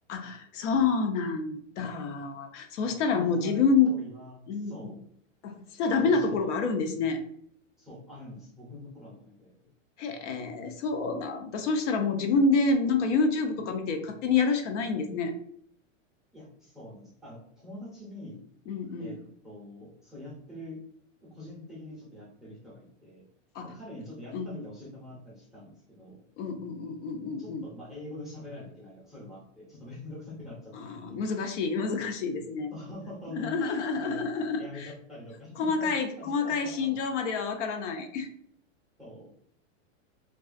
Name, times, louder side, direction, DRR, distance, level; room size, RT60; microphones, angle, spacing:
voice 1, 0.1-3.9 4.5-4.9 5.4-7.2 10.0-15.3 18.7-19.2 23.5-23.7 24.3-24.5 26.4-27.6 30.8-32.7 33.3-34.9 35.6-38.3, left 4 dB, 65° left, 5 dB, 0.5 m, -28 dB
voice 2, 2.8-5.0 6.0-6.7 7.8-9.5 16.3-18.4 19.0-19.2 19.4-20.8 21.2-23.2 23.6-26.2 27.4-30.7 31.0-31.2 32.7-34.2 34.6-37.0 39.0-39.3, left 1 dB, ahead, -6 dB, 0.5 m, -44 dB
2.4 x 2.3 x 2.4 m, 0.65 s
supercardioid pair, 145°, 39 cm